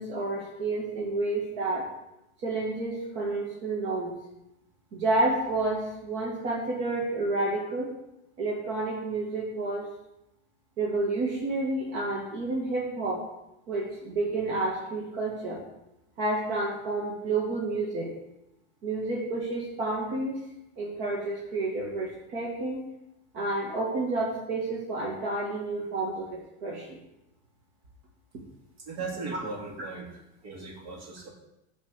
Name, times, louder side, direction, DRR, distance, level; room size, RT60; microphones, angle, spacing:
voice 1, 0.0-1.8 2.4-4.2 4.9-7.9 8.4-9.8 10.8-13.2 13.7-15.6 16.2-18.1 18.8-20.4 20.8-22.8 23.3-27.0 29.3-29.4, right 2 dB, 70° right, -3 dB, 2.1 m, -30 dB
voice 2, 28.9-30.1 30.4-31.3, right 3 dB, 90° right, -1 dB, 2.7 m, -37 dB
8.3 x 4.1 x 6.6 m, 0.90 s
supercardioid pair, 145°, 34 cm